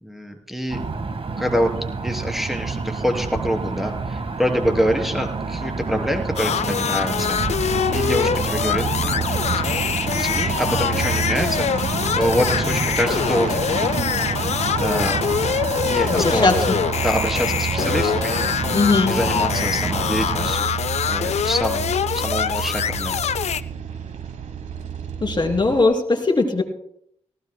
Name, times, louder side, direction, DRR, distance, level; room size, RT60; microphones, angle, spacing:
voice 1, 0.0-0.8 1.4-1.7 2.0-9.3 9.7-9.8 10.1-14.0 14.8-15.2 15.8-16.5 17.0-20.8 21.1-23.2, equal, ahead, 3 dB, 3.2 m, -26 dB
sound 1, 0.7-20.5, right 4 dB, 55° right, 1.5 m, -28 dB
sound 2, 6.4-23.6, left 8 dB, 70° left, 0.4 m, -24 dB
sound 3, 7.3-25.8, right 8 dB, 80° right, 1.1 m, -31 dB
voice 2, 16.2-16.6 18.7-19.1 25.2-26.6, left 3 dB, 40° left, 3 dB, 3.0 m, -19 dB
18.5 x 16.5 x 2.2 m, 0.70 s
cardioid pair, 45°, 12 cm